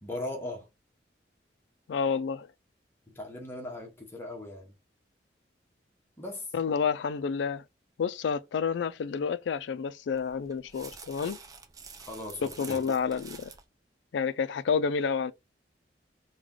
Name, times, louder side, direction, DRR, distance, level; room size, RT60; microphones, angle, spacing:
voice 1, 0.0-0.7 3.1-4.7 6.2-6.5 12.0-12.8, left 1 dB, 15° left, 0.9 m, -39 dB
voice 2, 1.9-2.5 6.5-7.6 8.0-11.4 12.6-13.5 14.1-15.3, left 6 dB, 75° left, 0.3 m, -29 dB
sound 1, 10.1-13.7, right 5 dB, 20° right, 0.5 m, -48 dB
3.2 x 2.2 x 3.7 m
head